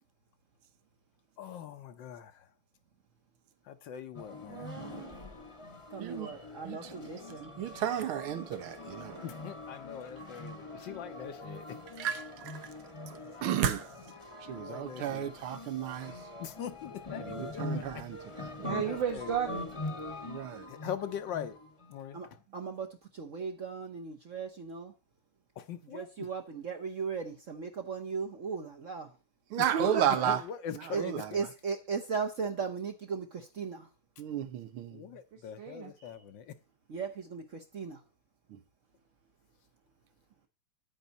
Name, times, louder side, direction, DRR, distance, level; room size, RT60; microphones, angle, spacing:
voice 1, 1.4-2.4 3.7-4.8 9.2-11.8 14.6-15.4 16.4-18.0 18.8-19.4 20.7-21.6 21.9-22.4 25.6-26.1 29.6-31.2 34.9-36.6, left 9 dB, 65° left, 1.4 m, -42 dB
sound 1, 4.1-22.0, left 2 dB, 20° left, 1.0 m, -43 dB
voice 2, 4.5-5.2 6.2-6.3 18.6-19.7 22.5-22.7 29.7-30.3 35.6-36.1, right 7 dB, 65° right, 2.2 m, -35 dB
voice 3, 5.9-7.5 22.1-22.3 22.5-22.9 23.1-24.9 25.8-29.1 30.9-31.0 31.3-33.9 36.9-38.0, right 5 dB, 50° right, 1.0 m, -37 dB
voice 4, 7.6-9.2 12.0-12.6 13.4-13.9 14.5-16.1 17.2-18.5 20.3-20.7 29.5-30.4 30.9-31.3 34.2-35.0 38.5-38.6, right 10 dB, 85° right, 1.9 m, -33 dB
9.6 x 9.2 x 4.1 m
omnidirectional pair, 2.3 m